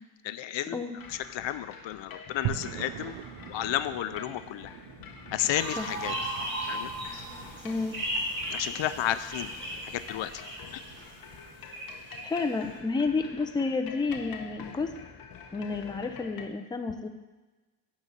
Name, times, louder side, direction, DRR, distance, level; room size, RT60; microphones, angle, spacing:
voice 1, 0.2-3.2 3.5-4.7 5.3-6.1 6.7-7.2 8.5-9.5 9.9-10.4, left 12 dB, 75° left, 12 dB, 0.6 m, -32 dB
sound 1, 1.0-16.5, left 6 dB, 50° left, 0.9 m, -47 dB
sound 2, 2.4-12.7, right 13 dB, 80° right, 0.5 m, -43 dB
sound 3, 5.5-12.5, right 1 dB, 25° right, 2.4 m, -36 dB
voice 2, 7.6-8.0 12.2-14.9 15.5-17.1, left 4 dB, 10° left, 5 dB, 0.6 m, -30 dB
10.5 x 4.1 x 7.4 m, 1.2 s
cardioid pair, 145°, 45 cm